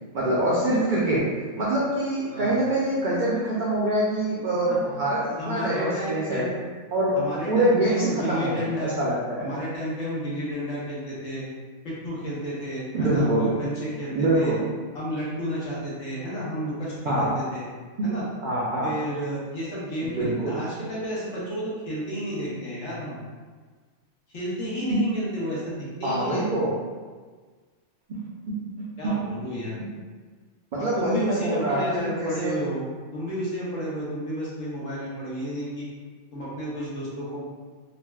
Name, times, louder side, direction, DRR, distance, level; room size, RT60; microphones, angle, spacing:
voice 1, 0.1-1.2 1.6-6.4 6.9-7.2 7.5-9.5 12.9-13.5 14.1-14.6 17.0-17.3 18.4-18.9 20.2-20.6 26.0-26.7 28.8-28.9 30.7-32.5, right 1 dB, 80° right, -7 dB, 0.4 m, -24 dB
voice 2, 5.4-6.5 7.2-9.0 9.4-11.4 11.8-14.5 14.9-17.6 18.0-18.2 18.8-23.2 24.3-26.5 29.0-29.8 30.8-32.8 33.1-35.8 36.3-37.4, equal, 65° left, -8 dB, 1.3 m, -31 dB
3.9 x 2.0 x 2.3 m, 1.5 s
omnidirectional pair, 1.5 m